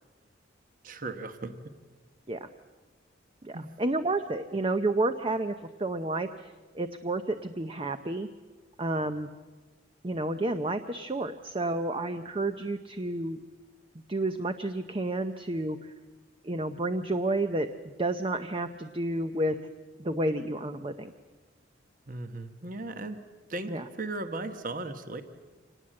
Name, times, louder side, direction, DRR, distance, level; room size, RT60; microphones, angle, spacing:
voice 1, 0.8-1.5 3.5-3.7 22.1-23.2 23.5-23.7 24.0-25.2, right 2 dB, 45° right, 8 dB, 1.2 m, -36 dB
voice 2, 3.4-8.3 8.8-9.3 10.0-13.4 14.1-15.9 16.4-17.7 18.0-19.6 20.0-21.1 23.7-23.9, right 2 dB, 30° right, 8 dB, 0.6 m, -30 dB
25.0 x 19.0 x 7.6 m, 1.3 s
head